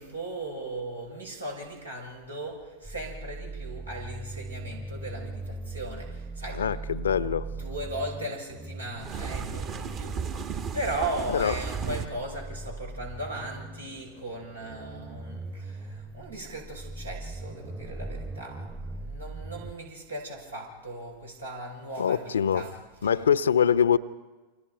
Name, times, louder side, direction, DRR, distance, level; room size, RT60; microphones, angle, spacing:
voice 1, 0.0-6.6 7.6-22.7, right 1 dB, 80° right, 6.7 m, -37 dB
sound 1, 2.8-19.7, right 2 dB, 15° right, 1.4 m, -40 dB
voice 2, 6.5-7.5 11.3-11.5 22.0-22.7 23.0-24.0, left 8 dB, 70° left, 0.8 m, -24 dB
sound 2, 9.0-12.1, right 6 dB, 35° right, 1.7 m, -34 dB
29.0 x 26.5 x 5.2 m
figure-of-eight pair, 90°, 0 cm